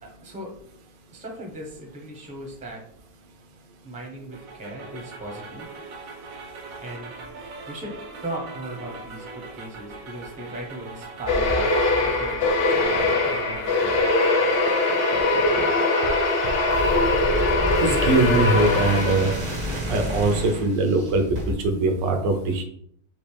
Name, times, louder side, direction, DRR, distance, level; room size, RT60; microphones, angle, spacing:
voice 1, 0.0-0.5 1.1-2.8 3.8-5.7 6.8-7.1 7.7-8.0 8.2-11.7 12.0-14.3, right 1 dB, 5° right, 0 dB, 0.8 m, -38 dB
sound 1, 4.3-17.2, right 3 dB, 60° right, 1.0 m, -41 dB
sound 2, 11.2-21.5, equal, 40° right, 0.6 m, -32 dB
sound 3, 11.3-19.6, left 2 dB, 80° left, 0.5 m, -22 dB
voice 2, 17.8-19.3 19.9-22.6, right 3 dB, 80° right, 4 dB, 1.4 m, -22 dB
5.1 x 2.9 x 3.4 m, 0.65 s
omnidirectional pair, 1.9 m